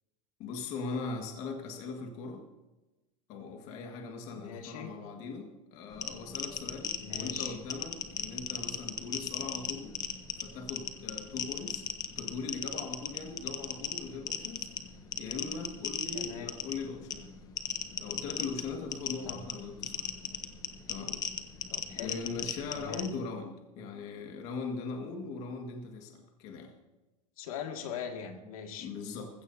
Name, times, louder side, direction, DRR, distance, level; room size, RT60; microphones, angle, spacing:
voice 1, 0.4-2.4 3.3-9.9 10.4-11.8 12.2-14.7 15.2-17.3 18.0-20.1 20.9-21.2 22.0-26.7 28.8-29.3, left 4 dB, 40° left, 3 dB, 1.8 m, -40 dB
voice 2, 4.3-4.9 7.0-7.6 16.1-16.5 19.2-19.4 21.7-22.2 22.7-23.1 27.4-28.9, left 7 dB, 80° left, 3 dB, 2.1 m, -41 dB
sound 1, 5.9-23.1, left 7 dB, 20° left, 0.8 m, -38 dB
20.0 x 16.0 x 2.8 m, 1.1 s
supercardioid pair, 170°, 18 cm